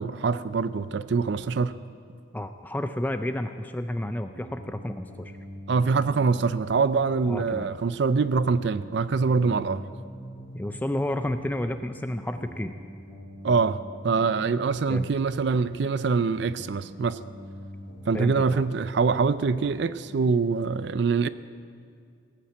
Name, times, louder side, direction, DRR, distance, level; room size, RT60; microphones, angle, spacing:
voice 1, 0.0-1.8 5.7-9.8 13.4-17.2 18.1-21.3, right 4 dB, 60° right, 0.4 m, -24 dB
voice 2, 2.3-5.3 7.3-7.7 10.5-12.7 14.9-15.1 18.1-18.6, left 1 dB, 10° left, 0.3 m, -31 dB
sound 1, 4.3-6.8 7.1-10.8 11.1-14.8 15.1-18.8 19.1-20.2, equal, 50° left, 5.2 m, -44 dB
18.0 x 8.6 x 7.9 m
head